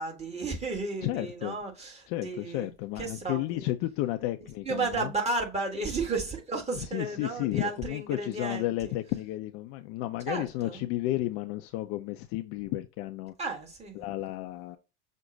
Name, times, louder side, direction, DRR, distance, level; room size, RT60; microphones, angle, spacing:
voice 1, 0.0-2.7 3.0-3.6 4.6-8.9 10.3-10.8 13.4-14.0, right 3 dB, 20° right, 1.5 m, -33 dB
voice 2, 1.0-1.6 2.1-5.1 6.7-13.3 13.9-14.8, left 16 dB, 40° left, 0.4 m, -32 dB
6.2 x 2.2 x 3.8 m
hypercardioid pair, 85°, 36 cm